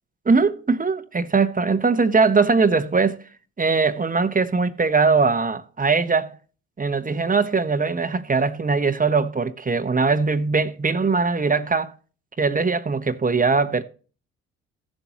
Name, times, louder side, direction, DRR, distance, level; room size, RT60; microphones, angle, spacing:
voice 1, 0.2-3.2 3.6-6.4 6.8-12.0 12.4-13.8, right 4 dB, 25° right, 1.2 m, -21 dB
15.5 x 7.1 x 3.0 m
hypercardioid pair, 50°, 35 cm